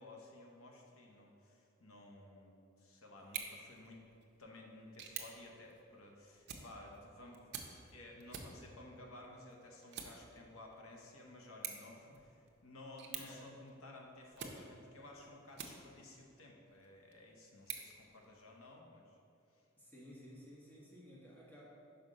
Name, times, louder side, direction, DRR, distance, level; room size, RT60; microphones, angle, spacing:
voice 1, 0.0-4.0 4.4-19.2 19.5-19.6, left 2 dB, 90° left, 0 dB, 0.9 m, -55 dB
sound 1, 3.2-16.2 16.7-18.7, right 7 dB, 55° right, 0.6 m, -51 dB
voice 2, 13.1-13.6 19.8-21.7, equal, 10° left, -6 dB, 1.3 m, -55 dB
5.7 x 5.2 x 5.0 m, 2.8 s
head